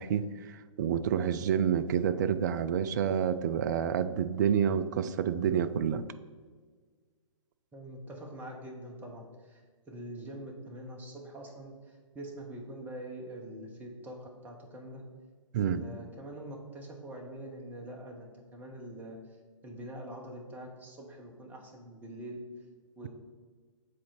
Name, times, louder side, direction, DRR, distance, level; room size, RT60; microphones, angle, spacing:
voice 1, 0.0-6.1 15.5-15.8, right 8 dB, 35° right, 12 dB, 0.3 m, -28 dB
voice 2, 7.7-9.6 9.9-15.0 15.5-19.2 19.6-22.4 23.0-23.1, right 1 dB, 10° right, 0 dB, 1.0 m, -44 dB
7.5 x 4.3 x 4.2 m, 1.5 s
figure-of-eight pair, 125°, 17 cm